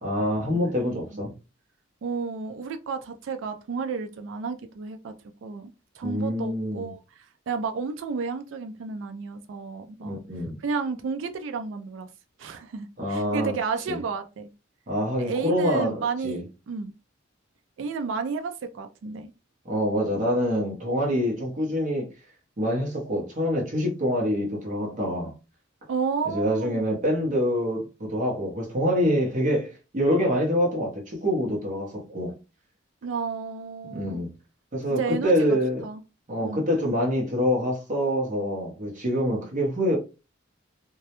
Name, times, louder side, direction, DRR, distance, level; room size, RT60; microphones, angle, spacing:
voice 1, 0.0-1.3 6.0-6.9 10.0-10.6 13.0-13.5 13.9-14.0 14.9-16.4 19.6-22.1 22.6-25.3 26.3-32.4 33.9-34.3 34.7-35.9 36.3-40.0, equal, 40° right, 0.7 m, -26 dB
voice 2, 2.0-5.1 5.4-10.2 10.6-12.1 12.4-14.5 15.2-16.9 17.8-19.3 25.9-27.0 33.0-34.2 34.9-35.6 35.8-36.0 36.4-36.6, right 5 dB, 70° right, 0.3 m, -32 dB
2.2 x 2.0 x 2.8 m
head